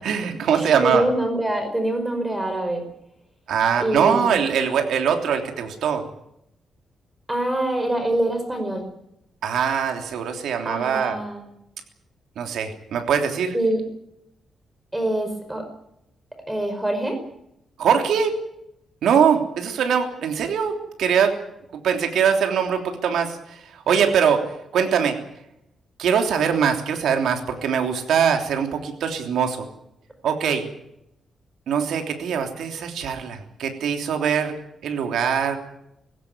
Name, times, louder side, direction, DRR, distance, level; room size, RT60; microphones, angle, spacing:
voice 1, 0.0-1.0 3.5-6.0 9.4-11.2 12.4-13.5 17.8-18.4 19.0-21.3 21.7-24.4 24.7-25.2 26.0-29.7 30.2-30.7 31.7-34.5 34.8-35.6, right 7 dB, 85° right, 4 dB, 3.2 m, -22 dB
voice 2, 0.5-2.8 3.8-4.3 7.3-8.8 10.6-11.4 13.5-13.8 14.9-15.6 16.5-17.2, right 1 dB, 10° right, 6 dB, 5.1 m, -24 dB
20.0 x 16.5 x 9.7 m, 0.80 s
cardioid pair, 110°, 0 cm